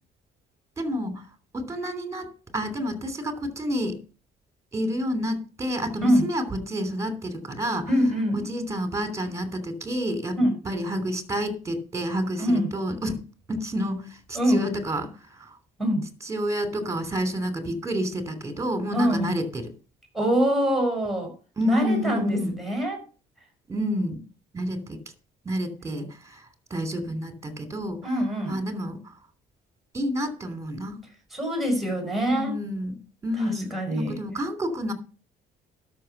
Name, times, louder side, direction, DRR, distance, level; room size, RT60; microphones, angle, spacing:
voice 1, 0.8-1.1 1.5-4.0 4.7-7.9 8.3-10.4 10.6-13.2 13.5-15.1 15.4-15.5 16.2-19.7 21.6-22.5 23.7-24.2 24.5-25.0 25.4-26.4 26.7-28.0 28.5-29.0 29.9-31.0 32.3-33.0 33.2-34.9, equal, 15° right, 3.0 m, -29 dB
voice 2, 7.9-8.4 10.4-10.6 12.4-12.7 14.3-14.6 15.8-16.1 18.9-19.3 20.1-21.3 21.6-23.0 28.0-28.6 31.3-32.6 33.4-34.2, equal, ahead, 5.2 m, -24 dB
12.0 x 6.2 x 6.7 m
cardioid pair, 110°, 17 cm